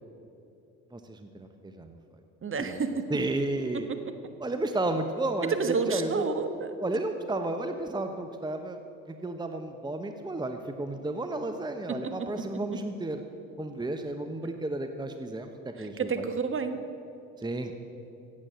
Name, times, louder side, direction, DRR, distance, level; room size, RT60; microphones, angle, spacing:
voice 1, 0.9-2.0 2.6-2.8 3.1-3.9 4.4-6.2 6.8-8.8 9.1-13.2 13.6-16.3 17.4-17.7, right 2 dB, 10° right, 6 dB, 1.0 m, -32 dB
voice 2, 2.4-3.1 4.2-4.3 5.5-6.8 11.9-12.3 15.8-16.8, right 5 dB, 35° right, 8 dB, 1.4 m, -30 dB
15.5 x 8.5 x 7.6 m, 2.8 s
hypercardioid pair, 60°, 37 cm